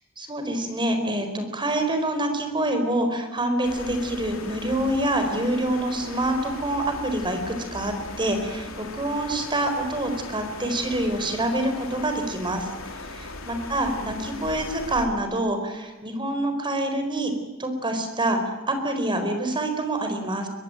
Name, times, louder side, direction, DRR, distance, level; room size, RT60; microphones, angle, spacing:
voice 1, 0.2-17.3 17.6-20.5, right 1 dB, 25° right, 7 dB, 4.5 m, -26 dB
sound 1, 3.6-15.1, left 3 dB, 70° left, 3.5 m, -38 dB
23.0 x 22.0 x 9.2 m, 1.1 s
head